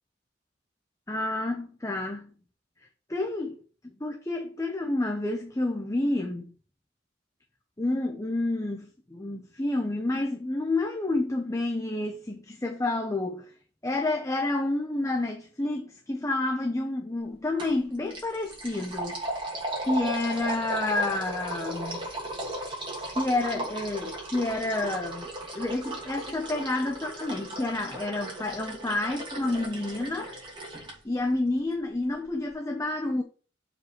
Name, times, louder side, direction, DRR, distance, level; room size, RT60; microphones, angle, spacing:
voice 1, 1.1-2.3 3.1-3.6 3.8-6.5 7.8-13.5 13.8-19.2 19.8-22.1 23.1-30.4 31.0-33.2, left 2 dB, 15° left, 0.8 m, -29 dB
sound 1, 17.6-17.8 18.1-30.9, right 1 dB, 25° right, 2.6 m, -36 dB
6.8 x 5.1 x 4.6 m
head